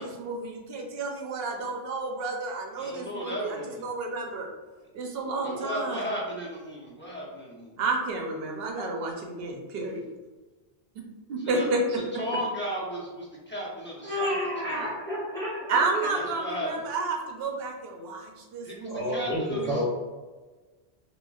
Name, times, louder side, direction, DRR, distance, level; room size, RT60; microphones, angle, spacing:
voice 1, 0.0-4.5 4.9-6.0 7.8-10.0 11.3-12.0 15.7-19.8, right 3 dB, 75° right, 1 dB, 0.8 m, -31 dB
voice 2, 2.8-3.8 5.4-7.7 11.5-11.7 12.2-14.3 14.6-14.9 16.1-16.7 18.6-19.8, equal, 15° left, -6 dB, 0.5 m, -35 dB
voice 3, 14.0-15.8 18.9-19.8, equal, 35° right, -8 dB, 0.7 m, -30 dB
3.9 x 2.0 x 2.3 m, 1.3 s
omnidirectional pair, 1.0 m